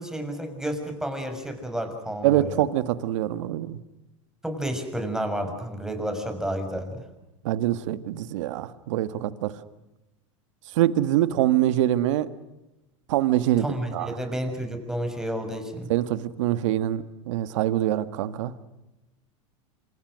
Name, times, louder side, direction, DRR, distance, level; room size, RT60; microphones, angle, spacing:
voice 1, 0.0-2.6 4.4-7.0 13.6-15.9, right 1 dB, 5° right, 6 dB, 6.4 m, -31 dB
voice 2, 2.2-3.8 7.4-9.5 10.8-12.3 13.1-13.7 13.9-14.1 15.9-18.5, right 13 dB, 70° right, 13 dB, 1.7 m, -24 dB
29.0 x 27.0 x 6.4 m, 0.97 s
hypercardioid pair, 100°, 17 cm